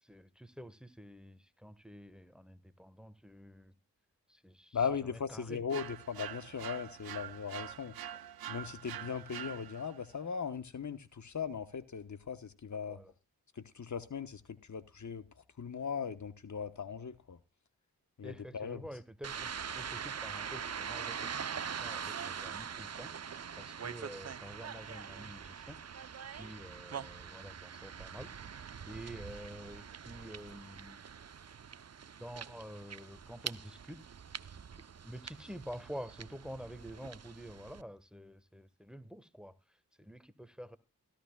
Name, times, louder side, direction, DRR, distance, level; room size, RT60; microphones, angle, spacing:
voice 1, 0.0-3.7 4.3-5.6 9.0-9.1 12.9-13.1 18.2-31.0 32.2-34.0 35.0-40.8, equal, ahead, 1.4 m, -49 dB
voice 2, 4.7-7.9 8.5-13.0 13.6-15.2 15.6-17.4 18.2-18.8, left 6 dB, 55° left, 1.2 m, -38 dB
sound 1, 5.7-10.0, right 11 dB, 85° right, 0.6 m, -45 dB
sound 2, 19.2-37.8, right 7 dB, 45° right, 0.7 m, -43 dB
16.0 x 13.5 x 2.3 m
cardioid pair, 40°, 35 cm